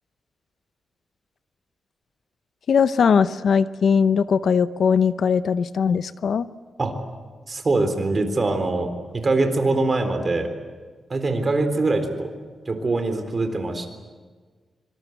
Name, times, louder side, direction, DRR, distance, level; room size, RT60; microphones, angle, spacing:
voice 1, 2.7-6.5, left 6 dB, 65° left, 14 dB, 0.7 m, -20 dB
voice 2, 7.5-10.5 11.1-12.3 12.7-13.9, right 3 dB, 30° right, 7 dB, 3.8 m, -23 dB
25.0 x 25.0 x 8.0 m, 1.5 s
wide cardioid pair, 130°, 0 cm